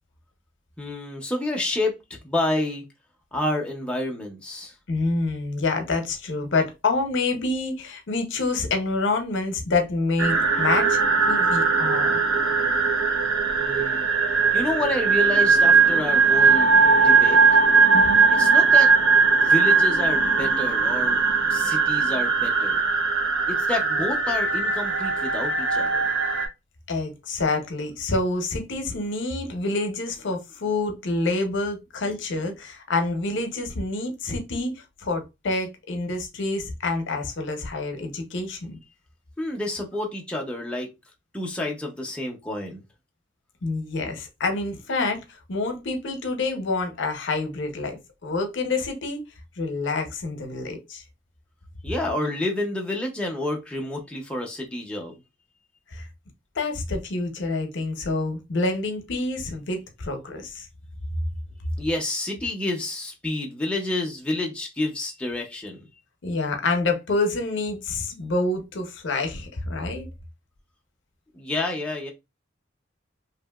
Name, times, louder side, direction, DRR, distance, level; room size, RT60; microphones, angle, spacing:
voice 1, 0.8-1.9 2.2-2.8 3.3-4.7 13.6-14.1 14.5-16.7 17.0-17.4 18.3-18.9 19.3-21.2 21.5-22.9 23.5-26.1 39.4-40.9 41.3-42.8 51.8-55.1 61.8-65.9 71.3-72.1, left 2 dB, 5° left, 0.5 m, -29 dB
voice 2, 4.9-11.0 11.3-12.2 17.9-18.2 26.9-38.8 43.6-45.2 45.5-49.2 49.6-51.0 55.9-56.0 56.6-60.7 66.2-70.0, left 3 dB, 65° left, 0.7 m, -27 dB
sound 1, 10.2-26.5, right 4 dB, 75° right, 0.7 m, -19 dB
2.8 x 2.5 x 2.3 m
head